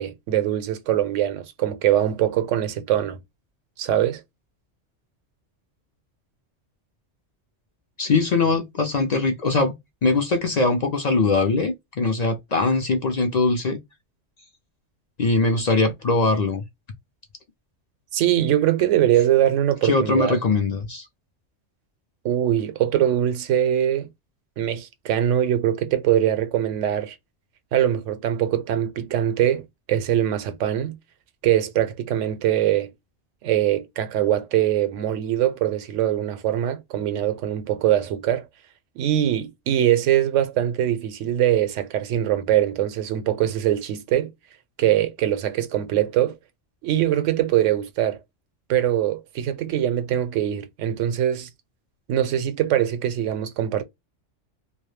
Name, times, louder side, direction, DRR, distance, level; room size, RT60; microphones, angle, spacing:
voice 1, 0.0-3.2 3.8-4.2 18.1-20.4 22.2-24.1 24.6-27.2 27.7-31.0 31.4-32.9 33.4-38.5 39.0-44.3 44.8-46.4 46.8-48.2 48.7-51.5 52.1-53.8, right 11 dB, 85° right, 0.9 m, -22 dB
voice 2, 8.0-9.7 10.0-13.8 15.2-16.6 19.8-21.1, left 3 dB, 55° left, 0.4 m, -21 dB
2.3 x 2.1 x 3.0 m
omnidirectional pair, 1.2 m